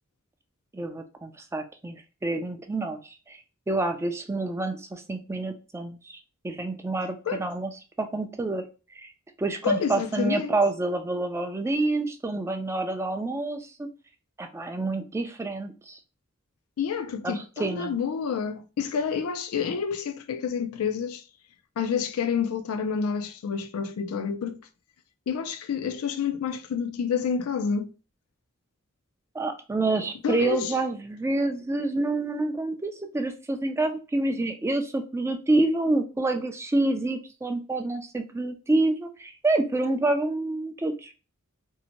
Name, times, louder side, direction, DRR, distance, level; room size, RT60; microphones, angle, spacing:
voice 1, 0.7-6.2 6.4-7.7 8.0-8.7 8.9-9.1 9.4-13.9 14.4-16.0 17.2-17.9 29.3-41.1, right 2 dB, 10° right, 0.3 m, -28 dB
voice 2, 9.6-10.6 16.8-21.2 21.8-24.6 25.3-27.9 30.2-30.7, left 6 dB, 80° left, 0.4 m, -28 dB
2.7 x 2.1 x 2.9 m
head